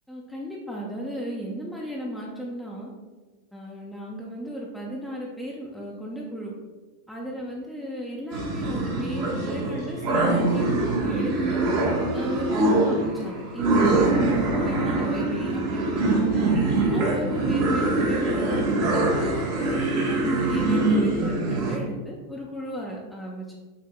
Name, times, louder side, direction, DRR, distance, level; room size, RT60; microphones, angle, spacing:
voice 1, 0.1-2.9 3.5-6.5 7.1-11.6 12.1-16.4 16.9-23.6, equal, ahead, -4 dB, 0.5 m, -35 dB
sound 1, 8.3-21.8, right 2 dB, 50° right, 0.9 m, -23 dB
6.7 x 2.7 x 2.3 m, 1.4 s
figure-of-eight pair, 90°, 0 cm